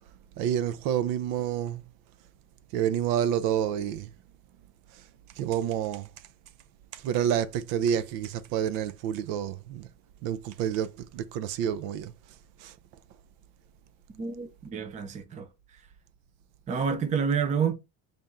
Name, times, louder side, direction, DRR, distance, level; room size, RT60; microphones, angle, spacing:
voice 1, 0.4-1.8 2.7-4.1 5.4-6.1 6.9-9.9 10.2-12.1 12.6-12.7, right 9 dB, 65° right, 0.6 m, -28 dB
voice 2, 14.2-15.5 16.7-17.7, right 6 dB, 20° right, 0.5 m, -28 dB
3.4 x 2.6 x 4.0 m
cardioid pair, 145°, 41 cm